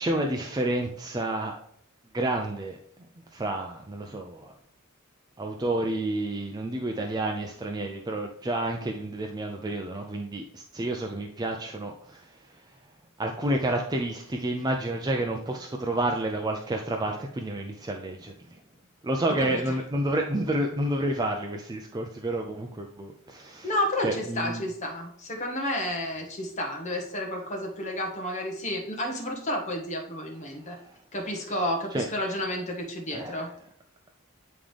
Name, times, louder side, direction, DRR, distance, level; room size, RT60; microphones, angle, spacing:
voice 1, 0.0-1.5 2.1-2.8 3.3-4.5 5.4-12.6 13.2-18.6 19.0-23.7 24.0-24.7 30.7-30.9 31.9-32.1 33.1-33.4, right 1 dB, 20° right, 2 dB, 0.5 m, -30 dB
voice 2, 19.4-19.8 23.6-30.8 31.1-33.5, left 1 dB, 35° left, 1 dB, 1.4 m, -31 dB
8.9 x 3.7 x 3.4 m, 0.69 s
head